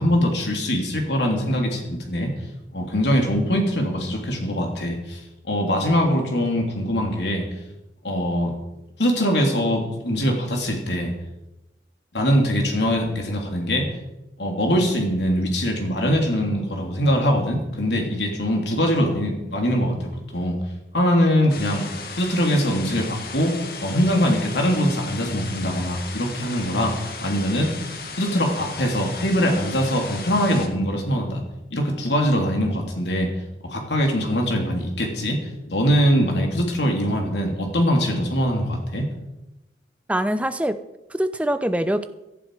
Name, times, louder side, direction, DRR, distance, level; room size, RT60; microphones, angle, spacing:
voice 1, 0.0-2.3 2.7-5.2 5.5-7.5 8.0-8.5 9.0-11.1 12.1-13.8 14.4-20.6 20.9-21.8 22.2-23.6 23.8-27.0 27.2-27.7 28.2-31.4 31.7-33.3 33.6-35.4 35.7-39.0, equal, 80° left, 2 dB, 3.3 m, -22 dB
sound 1, 21.5-30.7, left 4 dB, 55° left, 1.9 m, -36 dB
voice 2, 40.1-40.8 41.1-42.1, right 1 dB, 10° right, 11 dB, 0.6 m, -23 dB
17.0 x 11.5 x 5.0 m, 0.94 s
head